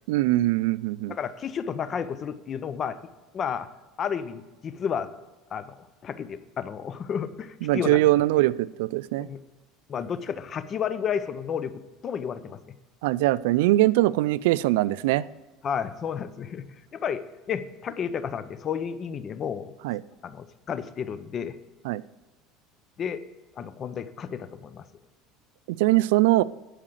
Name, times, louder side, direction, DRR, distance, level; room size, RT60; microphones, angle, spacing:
voice 1, 0.1-1.2 7.6-9.3 13.0-15.2 19.8-20.0 21.8-22.0 25.7-26.4, right 17 dB, 85° right, 19 dB, 0.3 m, -22 dB
voice 2, 1.1-3.0 3.3-3.7 4.0-5.1 5.5-5.8 6.0-8.1 9.2-9.4 9.9-12.7 15.6-17.2 17.5-19.7 20.2-21.6 23.0-23.2 23.6-24.9, left 7 dB, 30° left, 13 dB, 0.7 m, -32 dB
11.5 x 5.0 x 7.5 m, 1.2 s
cardioid pair, 140°, 0 cm